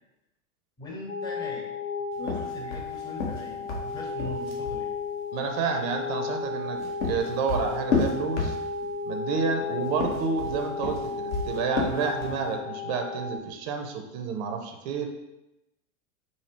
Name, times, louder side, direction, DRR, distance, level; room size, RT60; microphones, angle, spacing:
voice 1, 0.8-1.7 2.2-4.9, left 1 dB, 10° left, -1 dB, 0.7 m, -40 dB
sound 1, 1.1-13.4, left 4 dB, 80° left, 0.6 m, -34 dB
sound 2, 2.2-4.8 6.5-9.0 9.9-12.5, left 4 dB, 65° left, 1.0 m, -31 dB
voice 2, 5.3-8.6 9.0-15.1, right 5 dB, 30° right, 5 dB, 0.5 m, -30 dB
4.2 x 2.8 x 2.8 m, 0.93 s
figure-of-eight pair, 90°, 40 cm